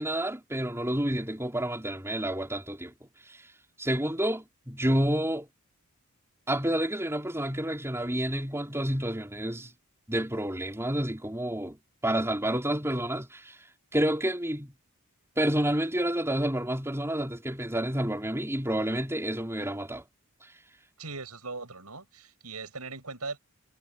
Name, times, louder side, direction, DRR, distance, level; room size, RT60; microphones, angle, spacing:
voice 1, 0.0-2.9 3.3-3.5 3.8-5.5 6.5-9.7 10.1-11.8 12.0-13.6 13.9-14.7 15.4-20.0 20.4-20.5, right 1 dB, 10° right, 4.2 m, -29 dB
voice 2, 21.0-23.4, right 3 dB, 90° right, 7.8 m, -39 dB
head